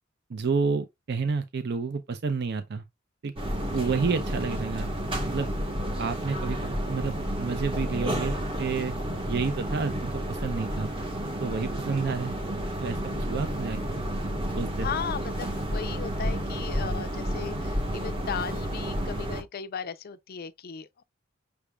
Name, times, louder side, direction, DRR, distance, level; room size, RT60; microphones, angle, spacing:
voice 1, 0.3-2.8 3.2-3.3 3.7-4.9 5.3-5.5 6.0-8.9 9.3-10.9 11.4-12.3 12.8-14.0 14.5-15.0, right 4 dB, 55° right, 0.5 m, -30 dB
sound 1, 3.4-19.4, equal, 25° right, 1.0 m, -31 dB
voice 2, 14.8-21.0, left 7 dB, 50° left, 0.4 m, -37 dB
5.9 x 3.4 x 2.2 m
head